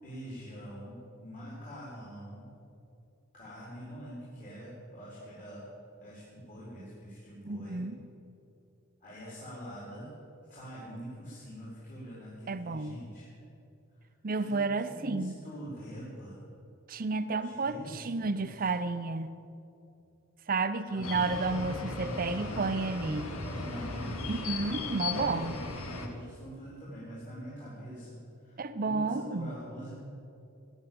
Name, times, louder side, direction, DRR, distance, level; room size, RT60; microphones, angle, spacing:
voice 1, 0.0-2.5 3.3-5.6 6.0-7.8 9.0-10.2 10.5-13.4 14.3-14.6 14.9-16.4 17.4-18.7 20.0-20.1 20.9-21.2 21.9-22.7 23.4-24.3 25.5-29.9, equal, 40° left, -7 dB, 4.4 m, -45 dB
voice 2, 7.4-8.0 12.5-13.0 14.2-15.4 16.9-19.3 20.5-23.4 24.3-25.6 28.6-29.6, right 3 dB, 40° right, 10 dB, 0.6 m, -31 dB
sound 1, 21.0-26.1, left 3 dB, 80° left, 1.7 m, -37 dB
18.0 x 10.0 x 7.8 m, 2.7 s
head